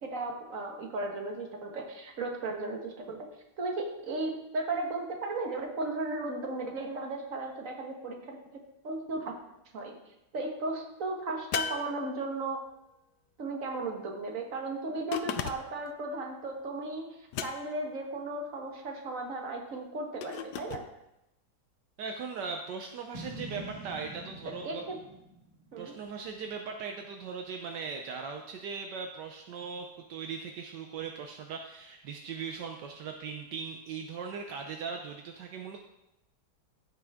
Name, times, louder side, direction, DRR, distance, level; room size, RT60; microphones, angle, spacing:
voice 1, 0.0-3.3 3.6-8.4 8.8-9.3 9.7-10.0 10.3-12.6 13.4-17.1 17.4-20.8 24.4-25.0 25.7-25.9, right 2 dB, 50° right, 1 dB, 1.8 m, -35 dB
sound 1, 11.5-12.6 15.1-15.9 17.3-17.9 20.2-20.9, left 8 dB, 75° left, 1.2 m, -36 dB
voice 2, 22.0-24.9 25.8-35.8, right 5 dB, 75° right, 3 dB, 1.4 m, -39 dB
Boom, 23.1-26.5, right 1 dB, 20° right, 1.6 m, -45 dB
15.0 x 6.2 x 3.6 m, 0.87 s
omnidirectional pair, 1.9 m